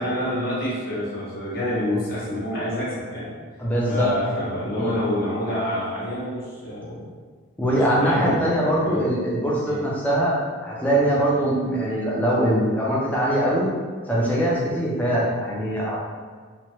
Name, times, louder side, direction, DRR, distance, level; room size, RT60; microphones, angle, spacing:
voice 1, 0.0-3.3 3.9-7.0 7.7-8.5 8.8-9.0 9.7-9.8, left 1 dB, 45° left, -8 dB, 0.8 m, -27 dB
voice 2, 3.6-4.1 4.8-5.0 7.6-13.7 14.1-16.0, right 1 dB, 10° left, -6 dB, 0.5 m, -22 dB
2.9 x 2.1 x 3.0 m, 1.5 s
head